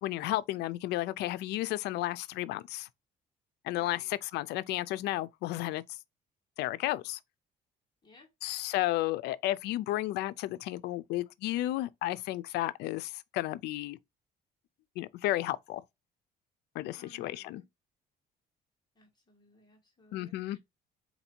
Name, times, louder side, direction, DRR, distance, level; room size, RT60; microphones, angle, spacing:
voice 1, 0.0-2.9 3.6-6.0 6.6-7.2 8.4-14.0 15.0-15.8 16.7-17.6 20.1-20.6, left 16 dB, 80° left, 0.4 m, -33 dB
voice 2, 3.8-4.1 8.0-8.3 16.9-17.7 18.9-20.6, left 2 dB, 25° left, 1.3 m, -60 dB
4.3 x 2.7 x 4.3 m
cardioid pair, 110°, 17 cm